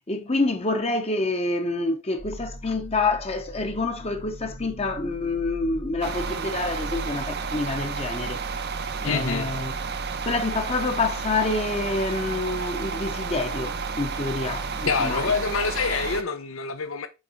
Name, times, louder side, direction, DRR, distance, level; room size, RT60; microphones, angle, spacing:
voice 1, 0.1-8.4 9.0-9.7 10.2-15.3, left 3 dB, 30° left, 0.9 m, -27 dB
sound 1, 2.2-7.2, equal, 65° right, 1.6 m, -41 dB
sound 2, 6.0-16.2, right 5 dB, 50° right, 0.7 m, -31 dB
voice 2, 9.0-9.5 14.9-17.1, left 5 dB, 75° left, 0.8 m, -26 dB
6.6 x 4.6 x 4.4 m
head